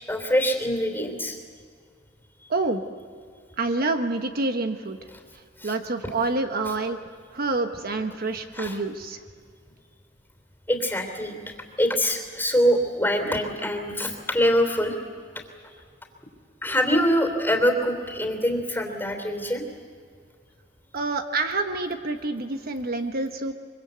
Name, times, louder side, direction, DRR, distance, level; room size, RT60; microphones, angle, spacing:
voice 1, 0.1-1.4 5.6-5.7 8.5-8.8 10.7-11.3 11.8-14.9 16.6-19.6, equal, 10° left, 4 dB, 3.3 m, -24 dB
voice 2, 2.5-2.8 3.6-5.0 5.6-7.0 7.3-9.2 20.9-23.5, right 3 dB, 50° right, 6 dB, 1.2 m, -27 dB
25.0 x 24.0 x 8.1 m, 2.2 s
head